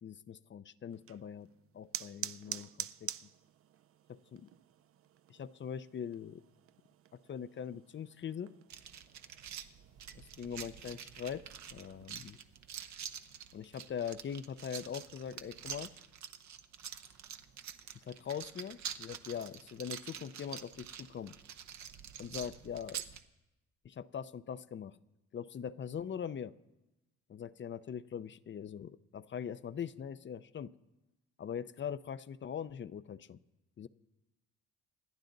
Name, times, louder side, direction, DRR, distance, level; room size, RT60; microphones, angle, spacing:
voice 1, 0.0-1.5 1.7-3.1 4.3-4.5 5.3-6.4 7.1-8.5 10.1-11.4 11.7-12.4 13.5-15.9 18.1-21.3 22.2-23.0 23.8-25.0 25.3-26.5 27.3-30.7 31.4-33.4 33.8-33.9, left 8 dB, 40° left, 15 dB, 0.6 m, -42 dB
sound 1, 0.9-12.0, right 11 dB, 50° right, 0.5 m, -48 dB
sound 2, 8.7-23.2, right 9 dB, 65° right, 0.9 m, -47 dB
27.0 x 10.5 x 4.0 m, 0.98 s
cardioid pair, 90°, 30 cm